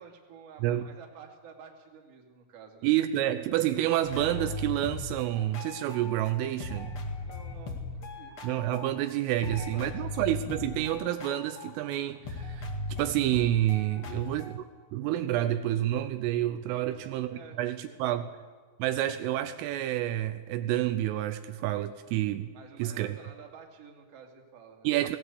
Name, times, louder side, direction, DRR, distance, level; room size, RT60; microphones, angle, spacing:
voice 1, 0.0-2.9 7.2-8.4 9.4-10.2 14.0-14.5 16.8-18.3 22.5-25.0, right 6 dB, 40° right, 1 dB, 2.4 m, -51 dB
voice 2, 2.8-7.0 8.4-14.7 14.9-17.3 17.6-18.3 18.8-22.5 22.8-23.2 24.8-25.2, right 13 dB, 80° right, 9 dB, 3.2 m, -29 dB
sound 1, 4.1-6.3 6.6-9.1 9.4-14.6, left 2 dB, 75° left, 1.2 m, -38 dB
19.0 x 17.0 x 8.1 m, 1.5 s
omnidirectional pair, 5.9 m